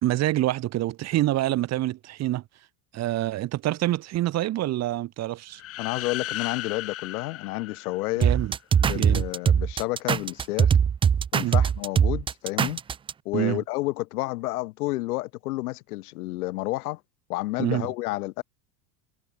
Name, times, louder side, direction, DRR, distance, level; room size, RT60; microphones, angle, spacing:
voice 1, 0.0-2.4 2.9-5.6 8.2-8.5 8.9-9.2 11.4-11.6 13.3-13.6 17.6-17.9, right 15 dB, 35° right, 3.3 m, -26 dB
sound 1, 5.5-8.5, left 14 dB, 30° left, 1.5 m, -36 dB
voice 2, 5.8-8.3 8.8-10.8 11.3-12.8 13.2-17.0 17.3-18.4, left 20 dB, 85° left, 5.9 m, -30 dB
sound 2, 8.2-13.1, right 7 dB, 10° right, 0.5 m, -21 dB
cardioid pair, 160°, 44 cm